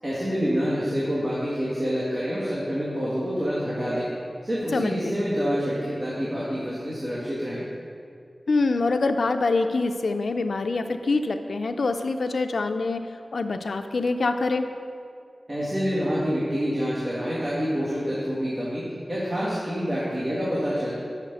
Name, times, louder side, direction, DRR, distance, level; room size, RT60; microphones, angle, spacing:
voice 1, 0.0-4.1 4.4-7.6 15.5-18.8 19.1-20.9, equal, 35° right, -9 dB, 1.8 m, -27 dB
voice 2, 4.7-5.1 8.5-13.1 13.3-14.7, left 3 dB, 85° left, 8 dB, 0.4 m, -25 dB
6.3 x 5.9 x 6.7 m, 2.3 s
wide cardioid pair, 70°, 0 cm